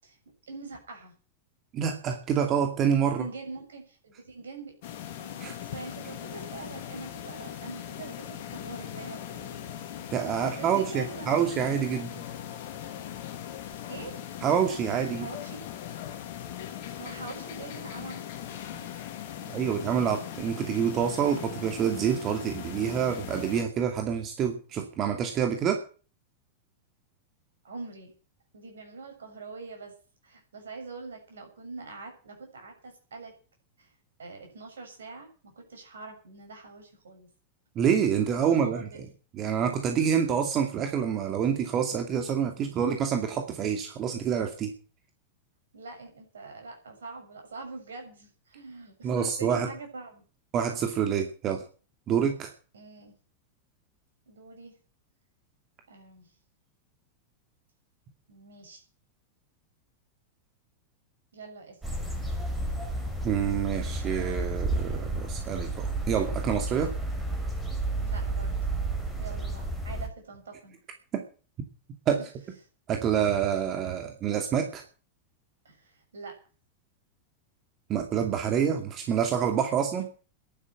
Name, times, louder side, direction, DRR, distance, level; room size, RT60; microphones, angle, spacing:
voice 1, 0.5-1.1 3.0-4.8 5.2-9.9 10.4-11.3 11.9-12.1 13.9-14.2 15.1-15.6 17.0-19.0 19.4-19.8 27.6-28.1 28.5-30.0 30.2-33.3 33.8-33.9 34.2-37.3 38.5-39.0 45.7-50.2 52.7-53.1 54.3-54.8 55.9-56.3 58.3-58.8 61.3-61.8 68.0-68.6 69.2-70.8 72.2-72.3 75.6-76.4, right 3 dB, 65° right, 3 dB, 7.2 m, -44 dB
voice 2, 1.7-3.2 5.4-5.5 10.1-12.1 14.4-15.3 19.5-25.8 37.8-38.9 39.3-44.7 49.0-49.7 50.5-51.6 52.1-52.5 63.2-66.9 71.1-71.2 72.1-72.2 72.9-74.8 77.9-80.1, right 8 dB, 30° right, 5 dB, 2.4 m, -27 dB
sound 1, 4.8-23.6, left 10 dB, 50° left, 2.4 m, -40 dB
sound 2, 61.8-70.1, right 2 dB, 5° right, 5.3 m, -31 dB
11.5 x 10.5 x 9.0 m, 0.38 s
figure-of-eight pair, 90°, 0 cm